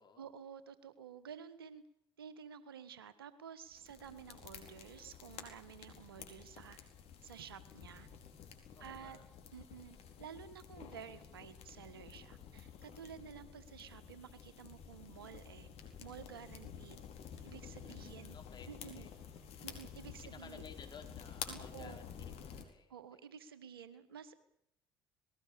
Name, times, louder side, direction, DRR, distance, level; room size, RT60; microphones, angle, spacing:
voice 1, 0.2-1.8 2.2-6.8 7.2-8.1 8.8-9.2 9.5-15.7 16.0-17.0 17.4-18.4 18.7-19.1 19.6-20.6 21.5-22.1 22.9-24.4, right 7 dB, 85° right, 14 dB, 1.5 m, -52 dB
sound 1, 3.7-22.7, left 7 dB, 60° left, 4.7 m, -51 dB
voice 2, 8.7-9.3 17.8-18.7 19.0-19.2 20.2-23.2, left 6 dB, 40° left, 5 dB, 4.7 m, -56 dB
20.0 x 18.5 x 8.6 m, 0.72 s
hypercardioid pair, 55°, 12 cm